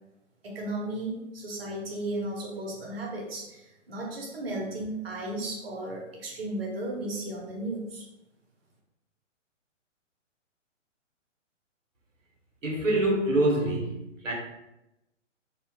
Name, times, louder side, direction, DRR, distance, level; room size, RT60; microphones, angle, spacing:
voice 1, 0.4-8.1, right 1 dB, 50° right, -1 dB, 0.9 m, -35 dB
voice 2, 12.6-14.3, right 1 dB, 75° right, 0 dB, 0.9 m, -25 dB
2.8 x 2.1 x 2.8 m, 0.90 s
figure-of-eight pair, 125°, 38 cm